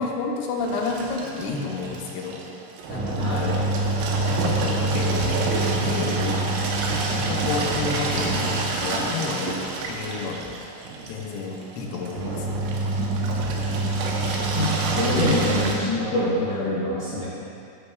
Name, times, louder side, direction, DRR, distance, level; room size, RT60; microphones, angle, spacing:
voice 1, 0.0-2.4 2.9-3.7 4.4-9.5 9.9-10.5 11.1-12.6, left 4 dB, 90° left, -1 dB, 3.5 m, -30 dB
Engine, 0.6-15.8, right 2 dB, 80° right, 3.4 m, -26 dB
voice 2, 3.1-3.5 13.0-13.1 14.5-17.2, left 1 dB, 70° left, -12 dB, 0.8 m, -25 dB
10.5 x 10.0 x 2.3 m, 2.6 s
omnidirectional pair, 5.7 m